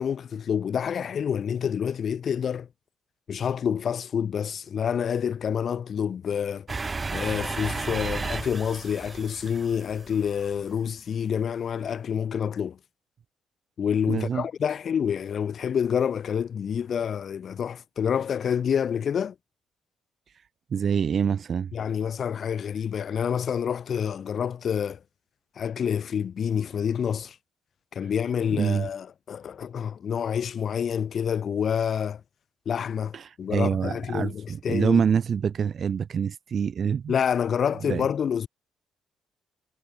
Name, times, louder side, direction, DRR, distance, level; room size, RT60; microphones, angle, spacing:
voice 1, 0.0-2.7 3.3-6.7 7.1-12.8 13.8-19.3 21.7-25.0 25.5-27.4 27.9-32.2 32.6-35.0 37.1-38.5, left 8 dB, 55° left, 3.5 m, -28 dB
sound 1, 6.7-10.6, right 4 dB, 25° right, 5.9 m, -33 dB
voice 2, 14.1-14.5 20.3-21.7 28.0-28.1 28.5-28.9 33.1-37.2 37.8-38.1, right 7 dB, 50° right, 2.0 m, -26 dB
cardioid pair, 90°, 0 cm